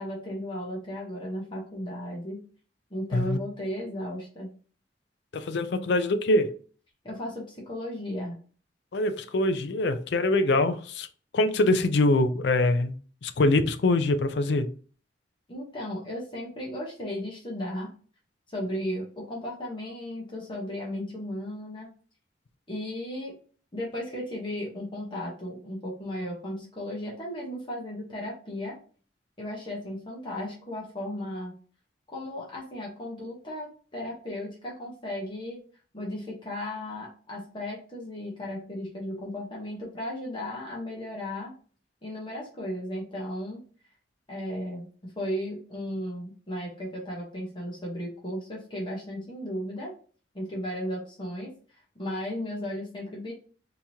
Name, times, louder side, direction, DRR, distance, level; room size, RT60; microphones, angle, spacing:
voice 1, 0.0-2.4 2.9-4.5 7.0-8.4 15.5-17.9 18.5-21.9 22.7-23.3 23.7-28.8 29.4-31.5 32.1-35.6 35.9-41.5 42.0-43.6 44.3-49.9 50.3-53.3, left 1 dB, 30° left, 1.0 m, -35 dB
voice 2, 5.3-6.5 8.9-11.1 11.3-13.0 13.2-14.7, left 2 dB, 70° left, 0.4 m, -24 dB
3.6 x 2.9 x 2.7 m
head